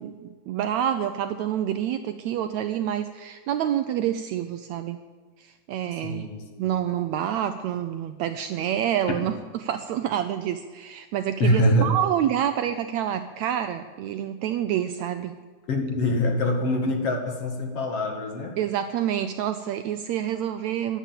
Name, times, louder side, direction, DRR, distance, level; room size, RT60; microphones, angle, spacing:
voice 1, 0.0-5.0 5.4-6.3 6.6-15.3 18.6-21.0, right 10 dB, 80° right, 9 dB, 1.7 m, -27 dB
voice 2, 6.0-6.7 11.4-11.8 15.7-18.6, left 1 dB, 50° left, 4 dB, 2.5 m, -24 dB
16.5 x 11.5 x 7.5 m, 1.4 s
omnidirectional pair, 3.8 m